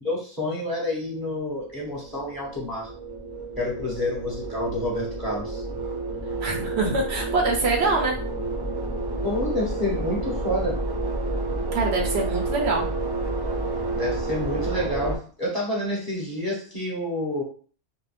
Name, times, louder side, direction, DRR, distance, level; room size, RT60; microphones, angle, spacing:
voice 1, 0.0-2.9 3.6-5.6 9.2-10.8 13.9-17.4, left 1 dB, 20° left, -5 dB, 0.9 m, -28 dB
sound 1, 1.5-15.2, right 2 dB, 25° right, 0.6 m, -30 dB
voice 2, 6.4-8.2 11.7-12.8, right 3 dB, 70° right, 1 dB, 0.9 m, -24 dB
2.5 x 2.2 x 3.2 m, 0.42 s
omnidirectional pair, 1.2 m